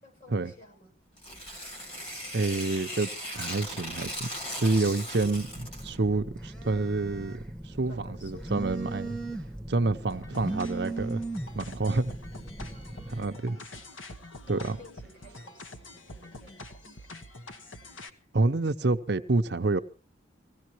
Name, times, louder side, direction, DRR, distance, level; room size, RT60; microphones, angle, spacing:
voice 1, 0.0-0.9 7.9-8.9 12.6-13.0 14.5-17.1, left 1 dB, 45° left, 7.1 m, -54 dB
Tearing, 1.2-6.0, equal, 30° left, 3.2 m, -38 dB
voice 2, 2.3-4.3 4.6-7.4 7.6-9.2 9.7-11.2 11.6-12.2 13.1-13.6 14.5-14.8 18.3-19.8, right 3 dB, 60° right, 0.7 m, -28 dB
Telephone, 5.2-13.3, right 2 dB, 5° left, 1.2 m, -38 dB
sound 1, 10.1-18.1, left 1 dB, 85° left, 1.4 m, -46 dB
24.5 x 16.5 x 3.0 m
head